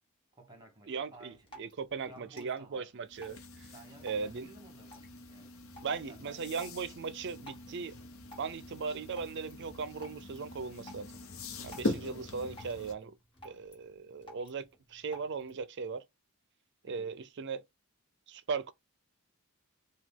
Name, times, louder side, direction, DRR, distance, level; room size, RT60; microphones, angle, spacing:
voice 1, 0.3-1.5 2.0-2.9 3.7-5.5 6.1-6.5 16.8-17.1, right 2 dB, 20° right, 1.4 m, -55 dB
voice 2, 0.9-3.7 4.0-4.5 5.8-8.0 8.4-11.1 11.6-13.2 13.4-16.0 16.8-17.6 18.3-18.7, right 5 dB, 55° right, 0.5 m, -38 dB
Drip, 1.1-15.6, equal, 25° left, 1.7 m, -57 dB
sound 1, 3.1-12.9, left 2 dB, 65° left, 0.8 m, -42 dB
4.9 x 2.3 x 3.6 m
head